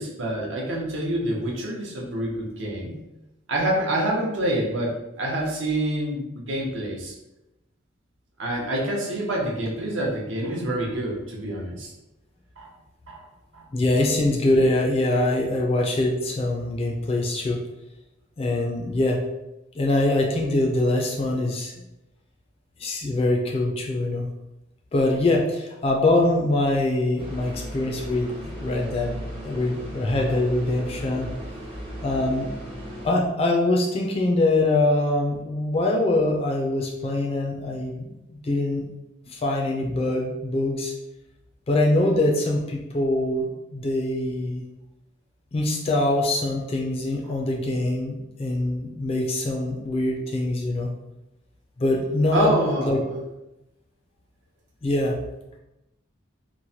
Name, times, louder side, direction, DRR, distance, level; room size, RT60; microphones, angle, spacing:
voice 1, 0.0-2.9 3.5-7.1 8.4-11.9 12.6-12.7 13.1-13.2 13.5-13.6 52.3-52.9, right 1 dB, 75° right, -2 dB, 0.7 m, -27 dB
voice 2, 13.7-17.6 18.4-19.2 19.7-21.7 22.8-24.3 24.9-31.3 32.0-32.5 33.0-38.8 39.3-40.9 41.7-44.6 45.5-50.9 51.8-52.6 52.8-53.0 54.8-55.2, left 2 dB, 30° left, 0 dB, 0.3 m, -23 dB
sound 1, 27.2-33.1, equal, 30° right, 0.6 m, -36 dB
3.0 x 2.1 x 2.7 m, 0.93 s
head